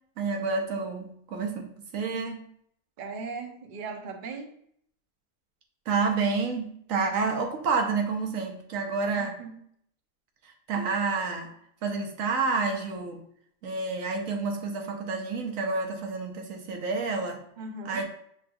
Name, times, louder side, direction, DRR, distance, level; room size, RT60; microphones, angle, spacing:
voice 1, 0.2-2.4 5.9-9.4 10.4-11.5 11.8-13.2 13.6-17.4 17.8-18.0, right 4 dB, 75° right, 3 dB, 1.1 m, -29 dB
voice 2, 3.0-4.5 9.2-9.6 17.6-18.0, right 4 dB, 50° right, 3 dB, 0.6 m, -38 dB
6.6 x 3.3 x 2.3 m, 0.67 s
omnidirectional pair, 1.4 m